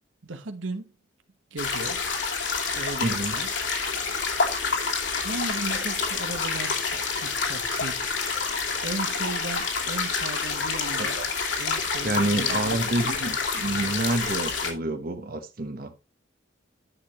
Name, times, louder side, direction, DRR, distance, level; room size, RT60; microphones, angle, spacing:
voice 1, 0.2-0.9 1.5-2.0 2.7-3.5 5.2-11.2 11.6-13.4, right 3 dB, 80° right, 1.2 m, -37 dB
sound 1, 1.6-14.7, left 5 dB, 65° left, 2.6 m, -28 dB
voice 2, 3.0-3.3 11.0-11.3 12.0-15.9, right 2 dB, 50° right, 1.1 m, -28 dB
11.5 x 6.7 x 3.0 m
head